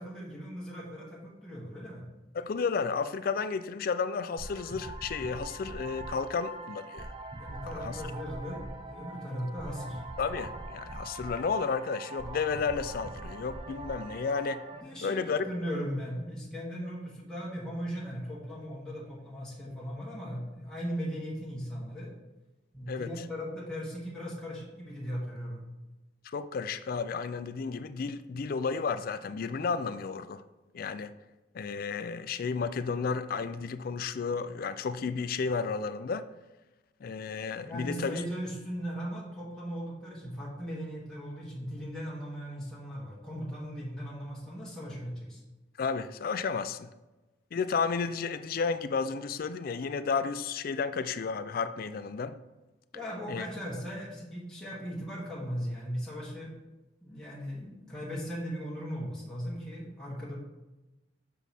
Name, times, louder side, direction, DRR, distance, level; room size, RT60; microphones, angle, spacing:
voice 1, 0.0-2.0 7.4-10.0 14.8-22.1 22.7-25.6 37.6-45.4 52.9-56.6 57.0-60.4, equal, 5° left, 1.4 m, -38 dB
voice 2, 2.3-7.1 7.8-8.0 10.2-14.6 15.0-15.5 22.9-23.1 26.2-30.4 30.7-31.1 31.5-36.3 37.0-38.2 45.8-46.9 47.5-52.3 53.3-53.5, left 5 dB, 55° left, 0.4 m, -32 dB
sound 1, 4.4-14.8, right 2 dB, 30° right, 0.5 m, -42 dB
7.1 x 4.6 x 4.2 m
head